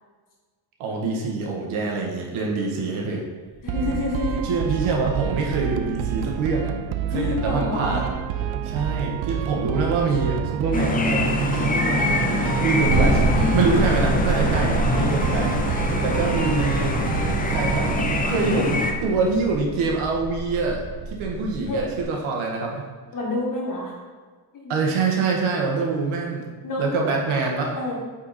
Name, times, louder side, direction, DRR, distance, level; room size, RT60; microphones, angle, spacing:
voice 1, 0.8-3.2 4.5-6.7 7.1-8.1 8.6-12.2 12.6-13.2 13.5-15.5 16.0-16.9 17.4-22.9 24.7-26.5 26.8-27.8, right 4 dB, 85° right, 0 dB, 1.6 m, -25 dB
sound 1, 3.5-22.0, right 2 dB, 40° right, 2.0 m, -29 dB
voice 2, 3.6-4.5 7.1-8.0 14.9-15.6 21.7-21.9 23.1-23.9 24.5-24.7 26.6-27.1 27.8-28.0, left 2 dB, 40° left, -2 dB, 1.8 m, -29 dB
sound 2, 3.7-18.2, right 10 dB, 70° right, 0.6 m, -29 dB
sound 3, 10.7-18.9, left 2 dB, 20° left, 0.5 m, -25 dB
8.4 x 4.5 x 4.2 m, 1.4 s
cardioid pair, 165°, 48 cm